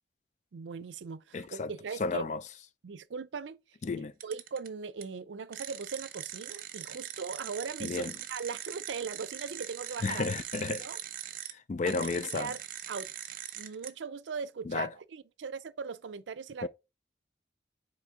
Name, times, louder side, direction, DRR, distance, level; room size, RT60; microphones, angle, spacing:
voice 1, 0.5-2.2 2.8-3.6 4.2-8.0 8.3-10.3 10.7-11.0 11.8-12.1 12.3-12.6 12.9-16.7, right 5 dB, 90° right, 0.5 m, -39 dB
voice 2, 1.3-1.7 2.0-2.4 3.8-4.1 7.8-8.1 10.0-10.8 11.5-12.5 14.7-14.9 16.6-16.7, left 4 dB, 40° left, 0.4 m, -32 dB
sound 1, 4.2-4.7 5.0-5.1 5.5-11.5 11.9-13.9, right 11 dB, 50° right, 0.8 m, -42 dB
6.4 x 4.2 x 3.7 m
head